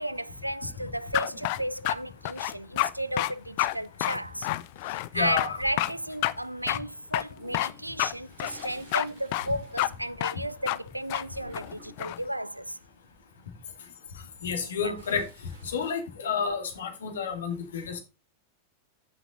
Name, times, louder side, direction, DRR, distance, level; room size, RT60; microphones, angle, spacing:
voice 1, 0.0-4.5 4.9-12.8 14.8-14.9, right 1 dB, 90° right, 0.3 m, -34 dB
sound 1, 1.1-1.9 2.2-2.9 3.2-3.3 3.6-3.7 4.0-5.1 5.4-5.5 5.8-5.9 6.2-6.3 6.7-6.8 7.1-7.7 8.0-8.1 8.4-9.1 9.3-9.5 9.8-9.9 10.2-10.4 10.7-10.8 11.1-11.2 11.5-12.2, left 18 dB, 50° left, 0.5 m, -28 dB
voice 2, 5.1-5.6 14.4-15.2 15.6-18.0, left 6 dB, 65° left, 2.2 m, -30 dB
Toilet flush, 7.3-10.7 11.0-12.2 14.2-16.0, right 2 dB, 65° right, 4.7 m, -53 dB
14.5 x 6.0 x 2.6 m
figure-of-eight pair, 90°, 0 cm